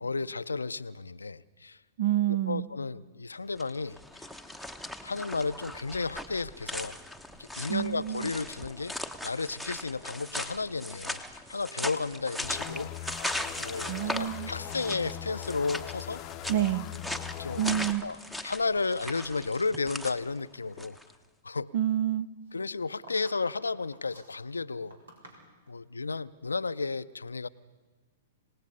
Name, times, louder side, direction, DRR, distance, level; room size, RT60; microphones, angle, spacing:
voice 1, 0.0-1.8 2.5-4.0 5.0-7.0 7.4-8.9 9.2-13.3 13.6-16.2 17.4-17.7 18.0-18.2 18.4-21.0 21.4-21.7 22.5-25.0 25.7-27.5, left 4 dB, 85° left, 15 dB, 0.5 m, -33 dB
voice 2, 2.0-2.6 7.7-8.3 13.8-14.5 16.5-16.9 17.6-18.0 21.7-22.3, right 12 dB, 55° right, 19 dB, 0.7 m, -28 dB
sound 1, 3.6-21.1, left 1 dB, ahead, 1.0 m, -39 dB
sound 2, 12.1-14.1 14.3-15.1 15.7-16.3 16.6-16.8 17.5-17.6 18.1-19.7 20.0-20.1 22.4-25.8, right 1 dB, 75° right, 4.3 m, -55 dB
sound 3, 12.4-18.0, left 14 dB, 40° left, 0.7 m, -41 dB
26.5 x 18.5 x 5.5 m, 1.3 s
figure-of-eight pair, 110°, 0 cm